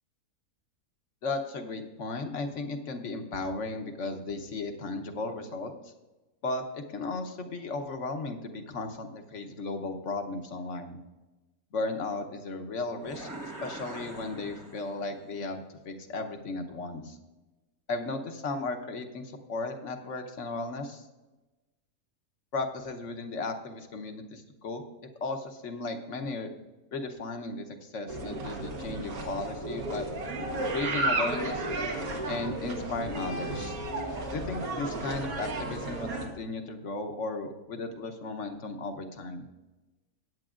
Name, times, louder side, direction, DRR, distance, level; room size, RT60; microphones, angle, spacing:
voice 1, 1.2-5.7 6.4-11.0 11.7-17.2 17.9-21.0 22.5-24.8 25.2-26.5 26.9-30.1 30.7-31.7 32.3-33.8 34.3-39.5, left 3 dB, 55° left, 6 dB, 1.3 m, -35 dB
sound 1, 13.0-15.3, right 2 dB, 15° right, 0.7 m, -43 dB
sound 2, 28.1-36.3, right 2 dB, 75° right, 1.9 m, -33 dB
15.5 x 9.5 x 2.5 m, 1.1 s
omnidirectional pair, 1.5 m